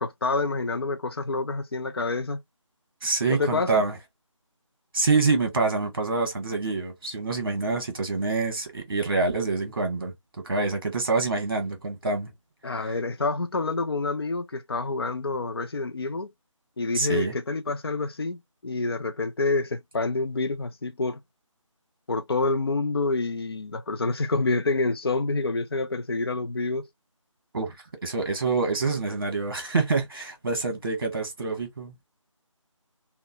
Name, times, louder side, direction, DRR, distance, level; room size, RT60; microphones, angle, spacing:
voice 1, 0.0-2.4 3.3-3.8 12.6-16.3 16.8-21.2 22.1-26.9, left 3 dB, 50° left, 0.5 m, -27 dB
voice 2, 3.0-3.9 4.9-10.1 10.4-12.3 16.9-17.3 27.5-27.7 28.0-32.0, right 3 dB, 45° right, 1.2 m, -26 dB
3.7 x 2.1 x 2.3 m
figure-of-eight pair, 165°, 17 cm